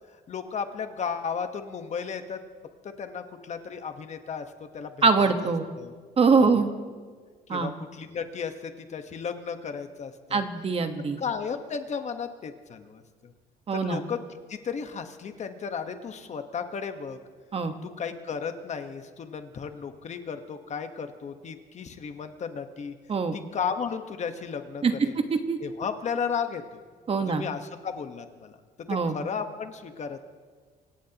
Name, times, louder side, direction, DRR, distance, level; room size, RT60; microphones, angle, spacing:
voice 1, 0.3-2.4 2.8-4.5 4.7-5.5 5.8-5.9 6.4-6.6 7.0-7.1 7.5-10.4 11.2-13.3 13.7-14.2 14.5-17.2 17.8-22.9 23.3-25.2 25.6-26.8 27.3-28.6 29.1-30.3, left 6 dB, 45° left, 7 dB, 1.3 m, -34 dB
voice 2, 5.0-5.6 6.2-6.7 7.5-7.7 10.3-11.2 13.7-14.0 17.5-17.7 23.1-23.3 24.8-24.9 25.3-25.6 27.1-27.4 28.9-29.1, right 4 dB, 35° right, 7 dB, 1.3 m, -23 dB
25.5 x 17.0 x 3.0 m, 1.5 s
cardioid pair, 110°, 17 cm